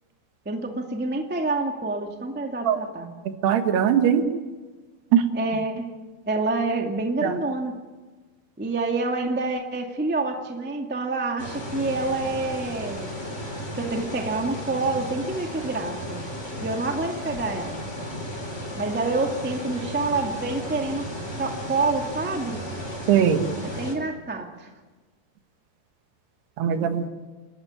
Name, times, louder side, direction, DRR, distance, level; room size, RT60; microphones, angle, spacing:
voice 1, 0.4-3.1 5.3-5.9 6.3-7.7 8.6-13.1 13.7-16.2 16.6-17.8 18.8-21.1 21.4-22.6 23.6-24.7, right 3 dB, 10° right, 3 dB, 0.6 m, -27 dB
voice 2, 3.4-4.3 5.1-5.2 7.2-7.4 23.1-23.5 26.6-27.1, right 8 dB, 85° right, 7 dB, 3.7 m, -20 dB
sound 1, 11.4-23.9, equal, 15° left, 4.5 m, -34 dB
29.0 x 13.0 x 9.9 m, 1.3 s
omnidirectional pair, 4.6 m